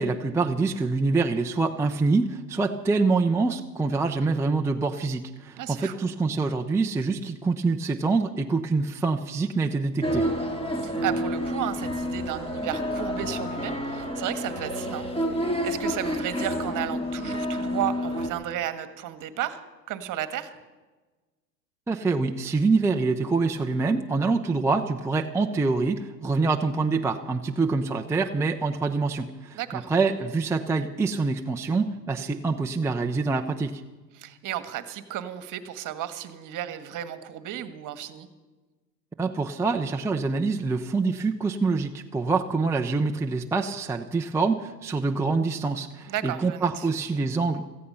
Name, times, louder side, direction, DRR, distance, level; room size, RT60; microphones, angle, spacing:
voice 1, 0.0-10.3 21.9-33.8 39.2-47.7, right 4 dB, 5° right, 3 dB, 0.6 m, -25 dB
voice 2, 5.6-6.0 10.7-19.6 19.9-20.5 29.5-29.9 34.1-38.3 46.1-46.9, right 11 dB, 40° right, 11 dB, 1.5 m, -33 dB
sound 1, 10.0-18.3, equal, 10° left, 2.2 m, -29 dB
17.5 x 14.5 x 5.6 m, 1.2 s
hypercardioid pair, 95°, 50 cm